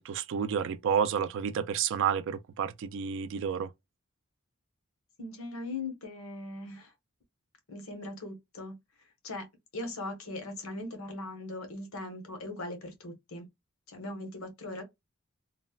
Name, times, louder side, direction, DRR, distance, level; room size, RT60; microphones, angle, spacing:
voice 1, 0.0-3.7, right 7 dB, 65° right, 0.3 m, -30 dB
voice 2, 5.2-6.9 7.7-8.7 9.2-9.4 9.7-13.5 13.9-14.8, left 2 dB, 80° left, 1.0 m, -39 dB
3.2 x 2.1 x 2.3 m
head